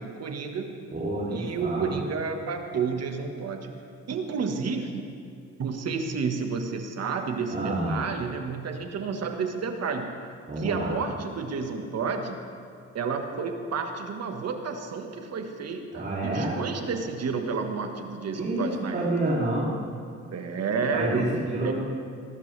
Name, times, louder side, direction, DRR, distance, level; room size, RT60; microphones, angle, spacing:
voice 1, 0.0-0.7 1.3-3.8 4.1-5.1 5.6-10.1 10.6-12.4 12.9-19.2 20.3-21.3 21.6-21.7, right 5 dB, 55° right, 5 dB, 1.5 m, -31 dB
voice 2, 0.9-1.9 7.5-8.0 10.5-10.9 15.9-16.5 18.4-19.7 20.9-21.7, right 1 dB, 30° right, -7 dB, 3.0 m, -28 dB
19.5 x 12.0 x 3.4 m, 2.4 s
cardioid pair, 90°, 30 cm